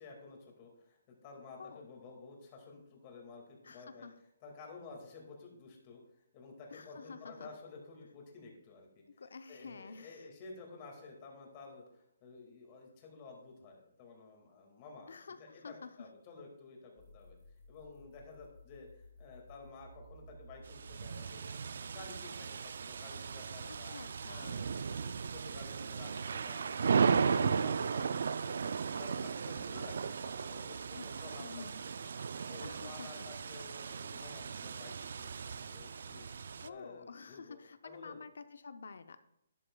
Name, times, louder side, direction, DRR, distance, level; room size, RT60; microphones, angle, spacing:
voice 1, 0.0-4.1 4.4-9.2 9.5-17.4 17.7-23.9 24.3-27.3 27.6-28.6 28.9-31.7 32.3-36.3 36.7-38.2, left 4 dB, 20° left, 0 dB, 2.0 m, -52 dB
voice 2, 3.6-4.1 6.7-7.5 9.2-10.3 15.1-16.1 23.7-24.7 27.2-27.9 31.0-31.7 32.6-33.3 36.6-39.2, left 5 dB, 75° left, 11 dB, 0.6 m, -49 dB
sound 1, 17.0-22.5, right 1 dB, ahead, 3.0 m, -57 dB
sound 2, 20.7-36.7, right 6 dB, 55° right, 0.3 m, -36 dB
12.0 x 11.0 x 2.3 m, 0.80 s
hypercardioid pair, 175°, 0 cm